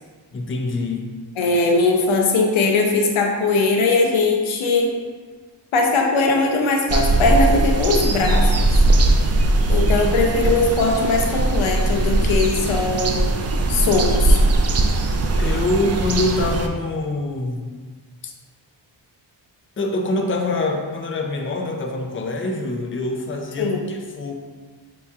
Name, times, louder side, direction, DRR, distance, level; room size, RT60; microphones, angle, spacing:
voice 1, 0.3-1.1 9.1-9.4 15.4-17.7 19.8-24.3, left 2 dB, 25° left, 3 dB, 0.6 m, -25 dB
voice 2, 1.4-4.9 5.7-8.7 9.7-13.2 13.7-14.4 23.6-23.8, left 3 dB, 85° left, 1 dB, 0.7 m, -20 dB
sound 1, 6.9-16.7, right 2 dB, 35° right, 0.5 m, -19 dB
6.3 x 3.0 x 2.3 m, 1.5 s
cardioid pair, 65°, 46 cm